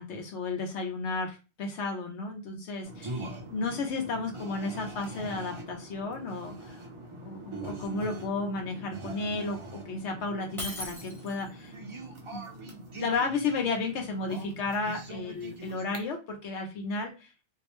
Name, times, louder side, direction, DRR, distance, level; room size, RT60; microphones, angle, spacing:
voice 1, 0.0-6.8 7.2-11.8 12.3-17.3, left 3 dB, 75° left, 3 dB, 1.0 m, -33 dB
sound 1, 2.8-16.0, right 2 dB, 40° right, 0.5 m, -43 dB
Shatter, 10.6-11.6, left 1 dB, ahead, 0.7 m, -39 dB
2.6 x 2.0 x 2.9 m, 0.30 s
omnidirectional pair, 1.2 m